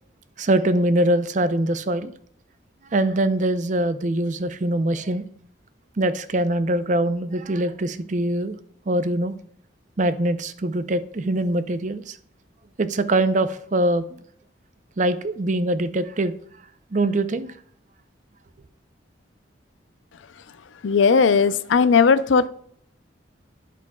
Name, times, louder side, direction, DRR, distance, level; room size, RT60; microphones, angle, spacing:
voice 1, 0.4-2.1 2.9-5.2 6.0-8.6 8.9-9.3 10.0-12.2 12.8-14.2 15.0-16.3 16.9-17.5, right 1 dB, 40° right, 0.5 m, -23 dB
voice 2, 20.8-22.5, left 5 dB, 85° left, 0.5 m, -17 dB
11.5 x 5.1 x 2.2 m
head